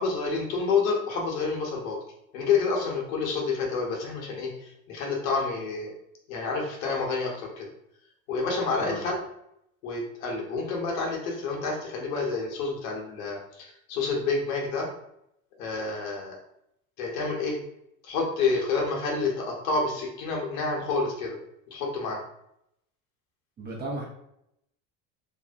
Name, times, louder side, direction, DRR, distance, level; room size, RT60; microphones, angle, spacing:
voice 1, 0.0-2.0 2.3-5.9 6.3-7.7 8.3-9.1 9.8-14.9 15.6-16.3 17.0-17.6 18.0-21.4 21.7-22.2, left 4 dB, 75° left, -1 dB, 0.9 m, -28 dB
voice 2, 23.6-24.0, right 2 dB, 25° right, -2 dB, 0.7 m, -34 dB
2.5 x 2.1 x 2.4 m, 0.77 s
hypercardioid pair, 95°, 41 cm